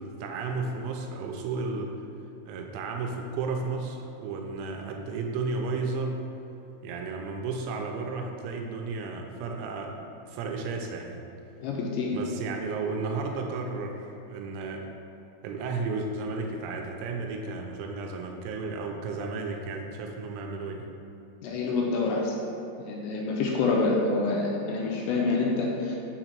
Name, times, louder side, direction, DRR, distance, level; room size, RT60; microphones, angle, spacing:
voice 1, 0.0-1.9 2.5-6.2 6.8-10.0 10.3-11.2 12.1-14.9 15.4-20.9, right 4 dB, 85° right, 2 dB, 2.9 m, -33 dB
voice 2, 11.6-12.2 21.4-22.3 22.8-26.0, left 3 dB, 80° left, -2 dB, 2.7 m, -27 dB
7.2 x 2.9 x 5.8 m, 2.9 s
omnidirectional pair, 5.5 m